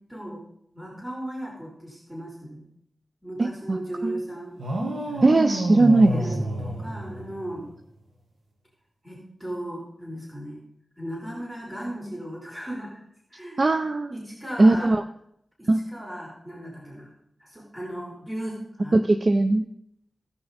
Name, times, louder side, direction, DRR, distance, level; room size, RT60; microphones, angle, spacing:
voice 1, 0.1-0.4 0.7-2.6 3.2-4.6 5.1-5.2 6.1-7.7 9.0-10.6 11.0-13.0 13.3-13.8 14.1-14.9 15.6-17.1 17.4-19.0, right 1 dB, 15° right, -3 dB, 3.8 m, -36 dB
voice 2, 3.4-4.2 5.2-6.2 13.6-14.1 14.6-15.0 15.7-15.8 18.9-19.6, right 2 dB, 50° right, 9 dB, 0.5 m, -19 dB
sound 1, 4.6-7.7, right 1 dB, 90° right, 1.6 m, -29 dB
16.5 x 5.6 x 4.2 m, 0.73 s
cardioid pair, 45°, 0 cm